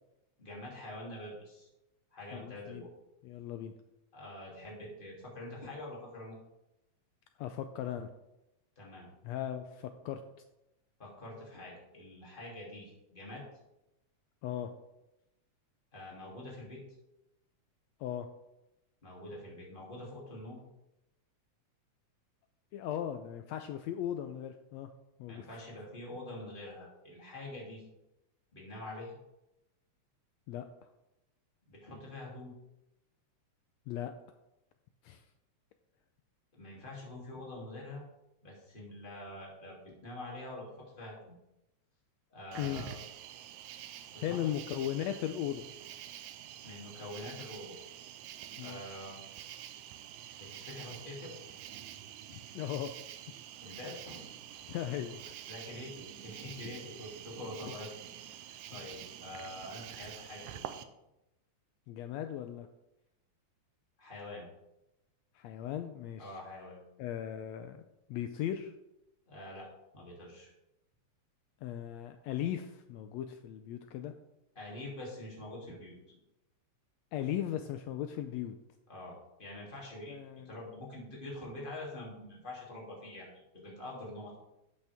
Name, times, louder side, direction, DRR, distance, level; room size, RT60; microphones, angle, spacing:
voice 1, 0.4-1.7 2.1-2.9 4.1-6.4 8.8-9.1 11.0-13.4 15.9-16.8 19.0-20.6 25.3-27.8 28.5-29.1 31.7-32.5 36.5-38.0 38.4-39.8 40.0-41.3 42.3-43.0 44.1-44.4 46.6-47.8 48.6-49.2 50.4-51.3 53.6-54.3 55.5-58.0 58.5-60.7 64.0-64.5 66.2-66.8 69.3-69.7 69.9-70.5 74.5-76.2 78.9-80.1 80.4-84.4, left 1 dB, 15° left, -4 dB, 2.7 m, -45 dB
voice 2, 2.3-2.9 3.2-3.7 7.4-8.1 9.2-10.2 14.4-14.7 18.0-18.3 22.7-24.9 25.2-25.6 30.5-30.7 33.9-34.1 35.0-35.2 42.6-42.8 44.2-45.6 48.6-48.8 52.3-52.9 54.7-55.4 58.7-58.8 61.9-62.7 65.3-66.4 67.0-67.8 68.1-68.7 71.6-74.1 77.1-78.6 80.1-80.6, left 10 dB, 80° left, 8 dB, 1.6 m, -37 dB
Cricket, 42.5-60.8, right 11 dB, 80° right, 2.0 m, -47 dB
12.0 x 8.4 x 3.5 m, 0.92 s
omnidirectional pair, 3.5 m